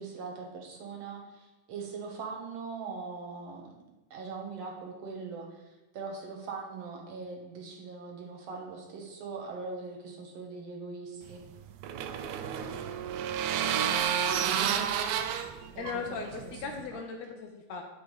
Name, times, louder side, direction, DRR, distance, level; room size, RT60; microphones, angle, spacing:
voice 1, 0.0-3.7 4.1-11.4 15.7-16.6, right 4 dB, 60° right, 1 dB, 2.3 m, -41 dB
sound 1, 11.3-16.8, right 8 dB, 80° right, 2.0 m, -31 dB
voice 2, 15.8-17.8, left 5 dB, 75° left, 3 dB, 1.8 m, -38 dB
10.0 x 7.0 x 3.3 m, 1.0 s
omnidirectional pair, 3.4 m